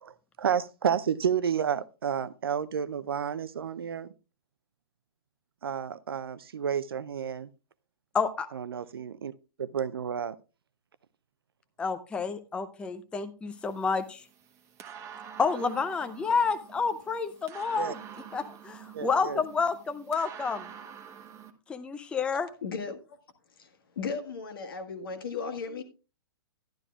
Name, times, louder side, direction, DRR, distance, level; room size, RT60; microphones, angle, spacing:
voice 1, 0.0-4.1 5.6-7.5 8.5-9.3 9.6-10.4 17.8-17.9 18.9-19.4, right 8 dB, 70° right, 0.5 m, -31 dB
voice 2, 8.1-8.5 11.8-14.2 15.4-18.0 18.3-20.7 21.7-22.5, left 5 dB, 10° left, 0.5 m, -29 dB
sound 1, 13.5-21.5, right 8 dB, 20° right, 1.1 m, -47 dB
voice 3, 22.6-23.2 23.6-23.7 23.9-25.8, left 5 dB, 65° left, 1.6 m, -35 dB
12.0 x 11.5 x 2.3 m
figure-of-eight pair, 115°, 13 cm